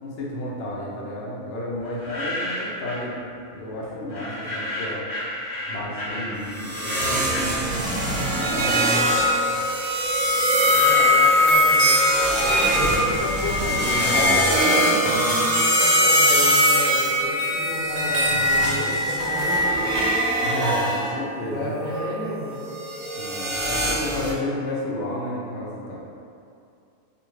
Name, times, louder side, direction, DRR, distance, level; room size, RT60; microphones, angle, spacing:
voice 1, 0.0-3.2 3.5-5.0 5.7-8.0 8.3-8.9 20.4-21.7 23.2-26.0, left 1 dB, 65° left, -4 dB, 0.8 m, -32 dB
sound 1, 1.8-3.1 4.1-8.3 8.7-12.4, left 1 dB, 40° left, 0.5 m, -33 dB
sound 2, 6.6-21.0 21.6-24.3, equal, 45° right, 0.5 m, -21 dB
voice 2, 10.7-12.0 12.7-19.9 21.1-22.7, left 1 dB, 85° left, -6 dB, 1.1 m, -32 dB
2.5 x 2.5 x 3.0 m, 2.5 s
omnidirectional pair, 1.4 m